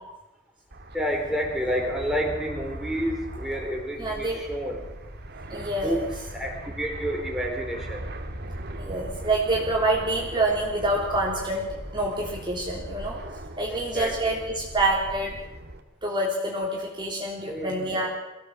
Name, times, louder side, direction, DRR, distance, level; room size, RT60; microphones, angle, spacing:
Fixed-wing aircraft airplane, 0.7-15.8, right 1 dB, 55° right, 2.1 m, -39 dB
voice 1, 0.9-4.8 5.8-6.0 6.3-8.0 13.9-14.3 17.5-18.1, equal, 5° right, 0 dB, 4.4 m, -29 dB
voice 2, 4.0-4.4 5.5-6.1 8.8-13.2 13.6-15.3 16.0-18.1, right 2 dB, 25° right, -2 dB, 3.4 m, -27 dB
24.0 x 16.0 x 7.7 m, 1.0 s
head